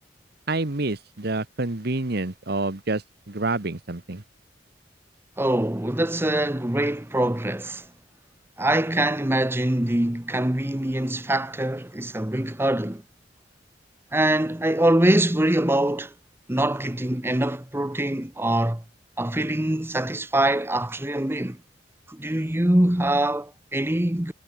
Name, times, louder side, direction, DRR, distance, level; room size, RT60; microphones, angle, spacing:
voice 1, 0.5-4.2, right 2 dB, 60° right, 1.4 m, -28 dB
voice 2, 5.4-7.8 8.6-13.0 14.1-16.1 16.5-18.8 19.2-21.6 22.1-24.3, right 1 dB, 15° right, 1.0 m, -23 dB
head